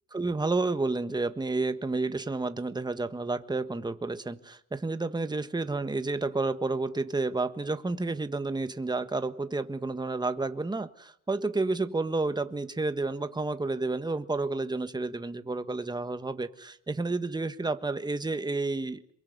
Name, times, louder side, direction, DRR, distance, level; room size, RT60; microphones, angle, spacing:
voice 1, 0.1-19.2, right 3 dB, 15° right, 10 dB, 1.4 m, -30 dB
27.0 x 23.0 x 8.1 m, 0.73 s
cardioid pair, 90°, 30 cm